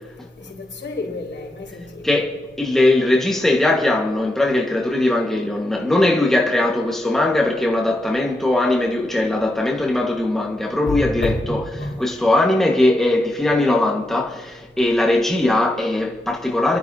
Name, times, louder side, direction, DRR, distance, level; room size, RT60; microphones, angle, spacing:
voice 1, 0.4-2.1 10.9-11.3 11.8-11.9, left 3 dB, 60° left, 4.6 m, -29 dB
voice 2, 2.0-16.8, left 2 dB, ahead, 1.5 m, -20 dB
28.5 x 13.0 x 2.8 m
wide cardioid pair, 105°, 21 cm